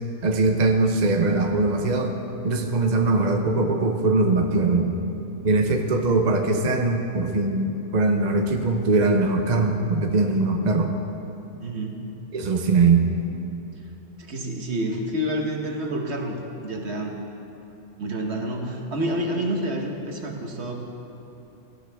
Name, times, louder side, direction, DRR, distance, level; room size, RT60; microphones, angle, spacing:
voice 1, 0.2-2.1 2.4-5.0 5.4-10.9 12.3-13.0, right 3 dB, 40° right, 4 dB, 0.8 m, -21 dB
voice 2, 11.6-12.0 14.3-16.3 16.6-17.2 18.0-20.8, right 1 dB, 55° right, 2 dB, 1.5 m, -28 dB
18.0 x 14.0 x 3.5 m, 2.9 s
omnidirectional pair, 1.3 m